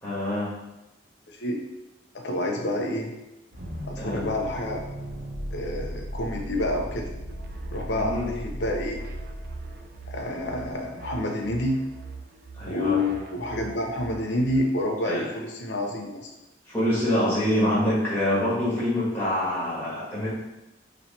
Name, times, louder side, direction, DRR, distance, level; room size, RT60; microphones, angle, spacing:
voice 1, 0.0-0.5 4.0-4.2 7.9-8.3 12.5-13.0 15.0-15.3 16.7-20.3, left 1 dB, 10° left, -9 dB, 1.3 m, -25 dB
voice 2, 1.3-1.6 2.2-3.1 3.8-4.8 5.5-7.1 7.7-9.0 10.1-11.8 12.7-16.3, left 1 dB, 60° left, 1 dB, 0.6 m, -28 dB
sound 1, 3.5-10.7, equal, 65° right, 1.1 m, -37 dB
sound 2, 7.3-14.6, right 4 dB, 50° right, 0.3 m, -43 dB
3.1 x 2.9 x 4.1 m, 0.97 s
head